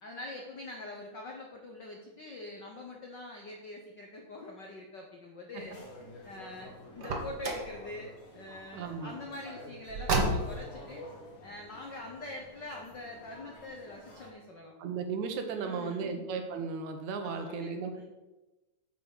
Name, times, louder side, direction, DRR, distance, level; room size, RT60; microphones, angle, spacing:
voice 1, 0.0-5.8 6.2-11.0 11.4-14.7 15.5-16.2 17.2-18.0, left 2 dB, 85° left, 1 dB, 0.9 m, -44 dB
sound 1, 5.5-14.3, left 1 dB, 70° left, 4.0 m, -50 dB
Car, 7.0-7.7 9.9-10.7, right 2 dB, 50° right, 1.3 m, -30 dB
voice 2, 8.7-9.2 14.8-17.9, right 5 dB, 70° right, 6 dB, 2.3 m, -35 dB
9.5 x 5.6 x 6.6 m, 1.1 s
omnidirectional pair, 3.7 m